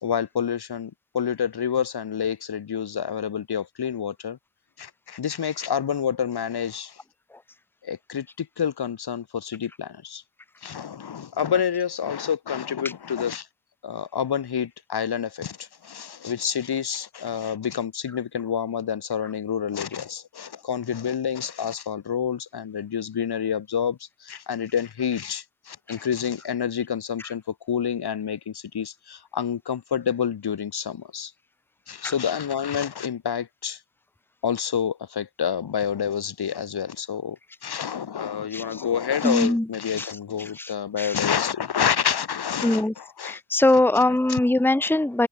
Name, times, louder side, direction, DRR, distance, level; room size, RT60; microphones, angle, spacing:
voice 1, 0.0-4.4 4.8-7.0 7.8-10.2 10.6-13.5 13.8-31.3 31.9-33.8 34.4-37.4 37.6-43.4 44.3-44.4, left 8 dB, 60° left, 1.8 m, -28 dB
voice 2, 38.5-38.8 39.2-39.7 40.0-40.1 40.6-41.2 42.6-42.9 43.2-45.3, left 2 dB, 5° left, 1.1 m, -22 dB
open air
wide cardioid pair, 140°, 42 cm